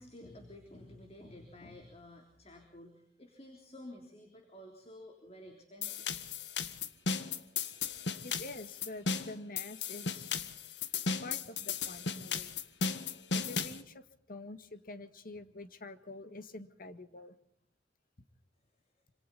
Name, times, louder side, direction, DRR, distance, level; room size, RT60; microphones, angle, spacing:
voice 1, 0.0-6.1, left 1 dB, 35° left, 4 dB, 3.3 m, -52 dB
sound 1, 5.8-13.8, left 5 dB, 85° left, 1.6 m, -36 dB
voice 2, 8.2-10.3 11.2-12.6 13.3-17.3, left 2 dB, 55° left, 10 dB, 1.8 m, -47 dB
26.5 x 26.5 x 4.2 m, 0.64 s
head